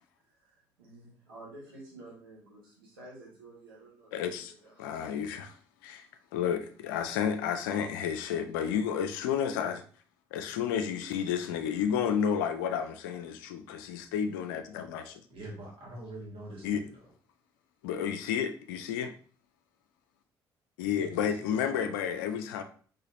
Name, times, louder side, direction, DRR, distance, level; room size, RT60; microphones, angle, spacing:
voice 1, 0.2-5.3, right 2 dB, 80° right, 1.2 m, -51 dB
voice 2, 4.1-4.5 4.8-5.6 5.8-6.1 6.3-9.8 10.3-15.2 16.6-16.8 17.8-19.1 20.8-22.6, left 8 dB, 70° left, 0.4 m, -31 dB
voice 3, 15.3-17.1 21.0-22.2, right 1 dB, 50° right, 1.9 m, -45 dB
3.9 x 3.6 x 2.6 m
figure-of-eight pair, 45°, 12 cm